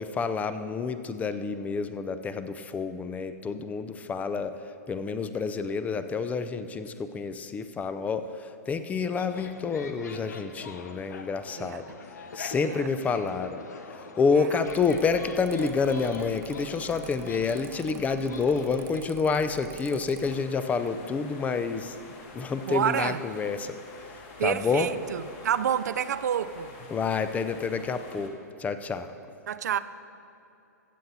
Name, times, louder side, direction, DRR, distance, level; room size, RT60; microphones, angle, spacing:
voice 1, 0.0-11.8 12.3-13.6 13.9-22.0 22.3-23.7 24.0-24.9 26.9-29.1, left 5 dB, 15° left, 0.5 m, -29 dB
sound 1, 9.2-19.0, left 4 dB, 75° left, 0.9 m, -44 dB
Mechanical fan, 14.6-20.4, right 8 dB, 25° right, 0.7 m, -48 dB
sound 2, 20.2-28.3, left 3 dB, 45° left, 1.6 m, -47 dB
voice 2, 22.7-23.2 24.4-26.7 29.5-29.8, right 9 dB, 70° right, 0.4 m, -28 dB
15.0 x 7.9 x 4.2 m
hypercardioid pair, 120°, 9 cm